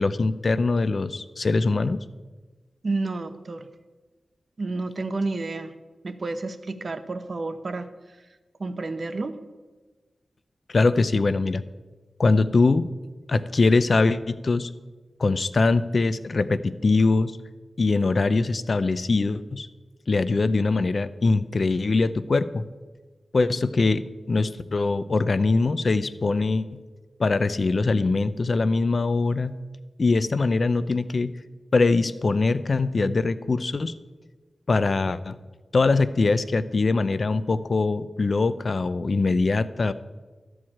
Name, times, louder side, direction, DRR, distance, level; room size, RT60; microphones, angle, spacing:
voice 1, 0.0-2.0 10.7-11.6 12.2-12.9 13.3-14.7 15.2-17.3 17.8-19.7 20.1-22.6 23.3-26.7 27.2-29.5 30.0-31.3 31.7-33.9 34.7-35.4 35.7-39.9, left 3 dB, 50° left, 14 dB, 0.5 m, -22 dB
voice 2, 2.8-3.7 4.6-5.7 6.0-7.9 8.6-9.4, right 3 dB, 50° right, 10 dB, 0.8 m, -30 dB
13.0 x 4.7 x 8.6 m, 1.3 s
wide cardioid pair, 85°, 0 cm